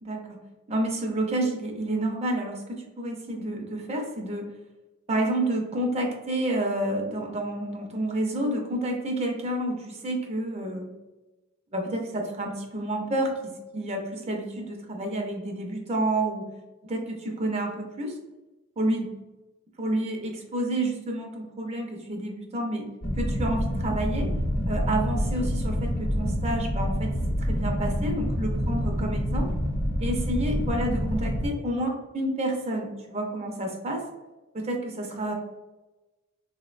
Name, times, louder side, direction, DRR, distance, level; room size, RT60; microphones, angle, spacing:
voice 1, 0.0-0.4 0.7-4.5 5.1-10.9 11.7-16.5 16.8-18.2 18.8-19.1 19.8-22.9 23.2-24.3 24.7-29.5 30.0-34.1 34.5-35.3, right 1 dB, 30° right, 2 dB, 0.5 m, -29 dB
sound 1, 23.0-31.5, equal, 45° left, 0.6 m, -27 dB
3.6 x 2.1 x 2.4 m, 1.1 s
head